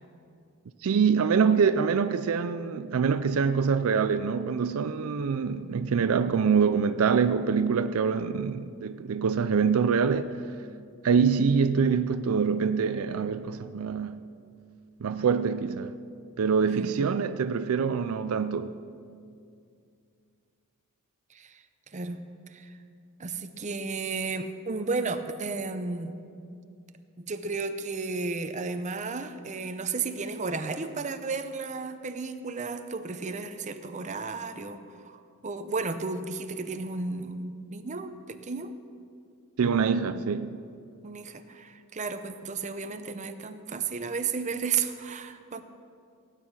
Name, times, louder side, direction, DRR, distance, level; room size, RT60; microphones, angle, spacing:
voice 1, 0.8-10.3 11.0-14.2 15.0-16.0 16.4-18.7 39.6-40.6, right 6 dB, 70° right, 0.4 m, -25 dB
voice 2, 16.7-17.1 21.3-22.2 22.5-22.8 23.2-26.2 27.2-38.7 41.0-45.6, right 4 dB, 35° right, 0.7 m, -33 dB
16.0 x 9.2 x 6.2 m
head